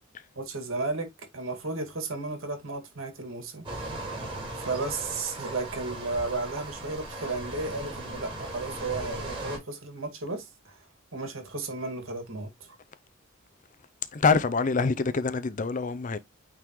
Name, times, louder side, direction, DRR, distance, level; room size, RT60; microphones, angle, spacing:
voice 1, 0.4-3.7 4.6-10.8 11.1-12.8, right 3 dB, 85° right, 2.2 m, -34 dB
sound 1, 3.6-9.6, right 2 dB, 25° right, 4.1 m, -37 dB
voice 2, 14.1-16.2, left 4 dB, 40° left, 0.5 m, -25 dB
9.0 x 3.7 x 3.1 m
head